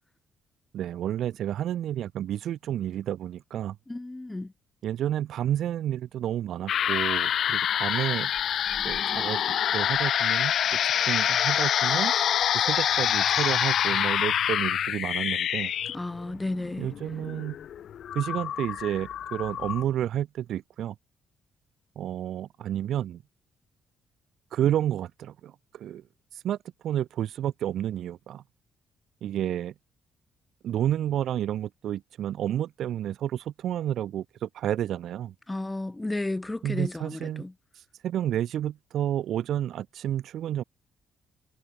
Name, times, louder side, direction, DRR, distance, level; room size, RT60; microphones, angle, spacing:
voice 1, 0.7-3.8 4.8-8.3 8.8-9.4 9.7-10.5 10.8-12.1 12.5-15.7 16.8-17.6 18.1-20.9 22.0-23.2 24.5-26.0 26.3-26.6 26.8-28.4 29.2-29.7 30.6-35.3 36.6-37.4 38.0-40.6, right 11 dB, 75° right, 2.1 m, -30 dB
voice 2, 3.9-4.5 15.8-16.9 35.5-37.5, left 2 dB, 15° left, 3.1 m, -33 dB
sound 1, 6.7-19.8, left 9 dB, 65° left, 1.2 m, -26 dB
cardioid pair, 90°, 0 cm